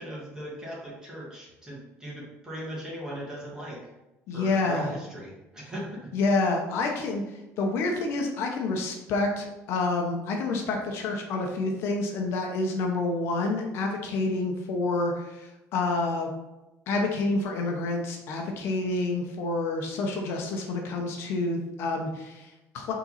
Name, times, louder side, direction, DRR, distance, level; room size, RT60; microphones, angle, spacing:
voice 1, 0.0-3.8 4.3-6.1 6.8-6.9, right 1 dB, 10° right, -5 dB, 2.0 m, -38 dB
voice 2, 4.3-4.9 6.1-16.3 16.9-22.9, left 3 dB, 50° left, 1 dB, 1.0 m, -28 dB
5.6 x 3.9 x 5.7 m, 0.99 s
cardioid pair, 180°, 5 cm